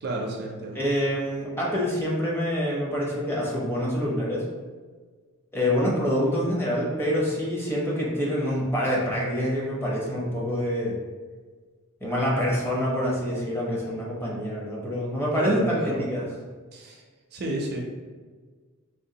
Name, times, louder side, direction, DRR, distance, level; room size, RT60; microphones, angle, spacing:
voice 1, 0.0-0.9 15.3-16.0 16.7-17.0 17.3-17.8, right 1 dB, 45° right, 0 dB, 0.4 m, -31 dB
voice 2, 0.7-4.5 5.5-11.0 12.0-16.3, equal, 10° left, -5 dB, 0.6 m, -26 dB
3.7 x 2.3 x 2.7 m, 1.5 s
head